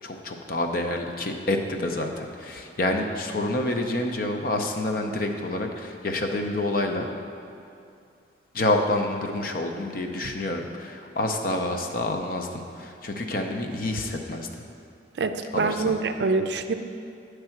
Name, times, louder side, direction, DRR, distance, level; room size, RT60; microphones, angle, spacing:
voice 1, 0.0-7.1 8.5-14.6 15.5-15.9, left 2 dB, 55° left, 4 dB, 0.6 m, -28 dB
voice 2, 15.2-16.7, right 4 dB, 70° right, 8 dB, 0.4 m, -25 dB
9.7 x 3.4 x 5.8 m, 2.5 s
head